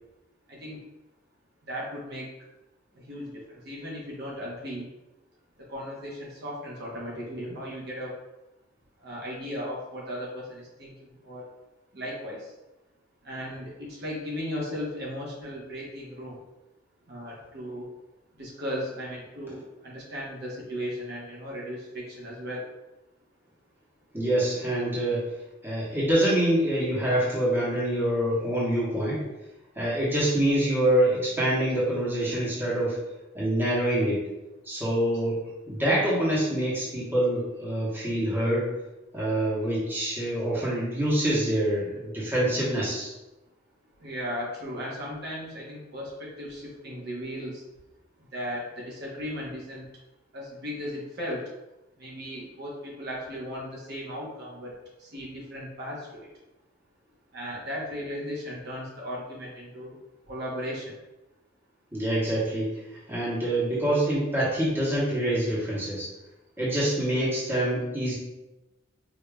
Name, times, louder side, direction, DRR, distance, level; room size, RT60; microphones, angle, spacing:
voice 1, 0.5-0.8 1.7-2.3 3.1-4.8 5.7-8.1 9.0-10.9 11.2-11.4 11.9-12.4 13.2-16.4 17.1-17.9 18.4-22.6 44.0-47.6 48.3-49.9 50.3-51.4 52.0-54.7 55.0-56.3 57.3-59.9 60.3-60.9, equal, 55° right, -5 dB, 1.0 m, -36 dB
voice 2, 24.1-25.3 25.6-29.2 29.7-33.0 33.3-34.3 34.7-35.4 35.7-38.7 39.1-43.1 61.9-62.8 63.1-66.1 66.6-68.1, right 1 dB, 10° right, -8 dB, 1.1 m, -25 dB
4.8 x 2.7 x 2.3 m, 0.99 s
head